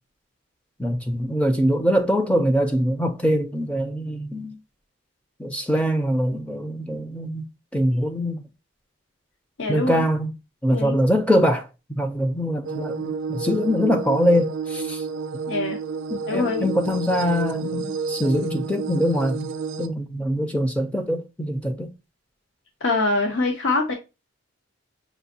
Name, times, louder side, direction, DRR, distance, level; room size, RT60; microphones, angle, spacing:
voice 1, 0.8-4.6 5.4-7.5 7.7-8.4 9.7-10.3 10.6-15.0 16.1-19.5 19.8-21.9, equal, 5° left, 0.4 m, -23 dB
voice 2, 9.6-10.0 10.7-11.0 15.5-15.8 16.3-16.7 22.8-23.9, left 3 dB, 60° left, 0.7 m, -24 dB
sound 1, 12.6-19.9, right 5 dB, 65° right, 0.3 m, -30 dB
6.0 x 2.5 x 2.7 m
head